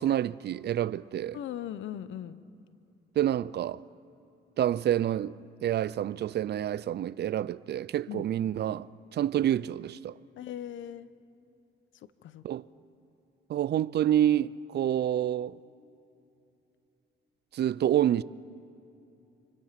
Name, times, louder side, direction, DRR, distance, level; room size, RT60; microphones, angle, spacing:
voice 1, 0.0-1.4 3.2-3.8 4.6-5.3 5.6-10.1 12.4-12.7 13.5-15.6 17.5-18.2, right 11 dB, 55° right, 0.5 m, -28 dB
voice 2, 1.3-2.4 8.1-8.3 10.4-11.1 12.2-12.4, left 11 dB, 75° left, 0.9 m, -39 dB
28.0 x 22.0 x 5.9 m
cardioid pair, 90°, 20 cm